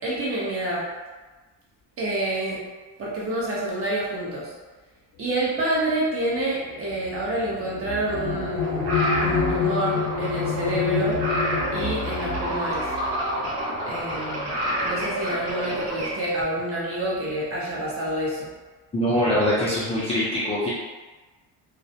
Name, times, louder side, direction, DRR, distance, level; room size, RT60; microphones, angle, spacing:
voice 1, 0.0-0.8 2.0-2.6 3.0-4.5 5.2-11.2 11.7-12.8 13.9-18.5, right 1 dB, 35° right, -5 dB, 0.7 m, -28 dB
sound 1, 5.5-14.4 15.3-15.4 15.8-16.4, left 6 dB, 70° left, 0.7 m, -29 dB
sound 2, 8.1-16.1, equal, 70° right, 0.7 m, -29 dB
voice 2, 18.9-20.7, left 1 dB, 15° left, -10 dB, 0.4 m, -23 dB
2.3 x 2.0 x 2.7 m, 1.3 s
cardioid pair, 130°, 42 cm